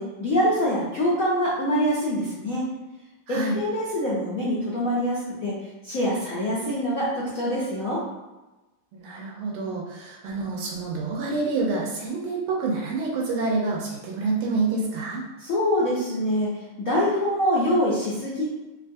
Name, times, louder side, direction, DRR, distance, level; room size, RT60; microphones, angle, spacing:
voice 1, 0.0-2.6 3.3-5.5 5.8-8.0 15.4-18.5, equal, 85° left, -8 dB, 0.7 m, -25 dB
voice 2, 8.9-15.2, right 3 dB, 85° right, -2 dB, 1.5 m, -27 dB
3.5 x 2.3 x 2.5 m, 1.1 s
omnidirectional pair, 2.3 m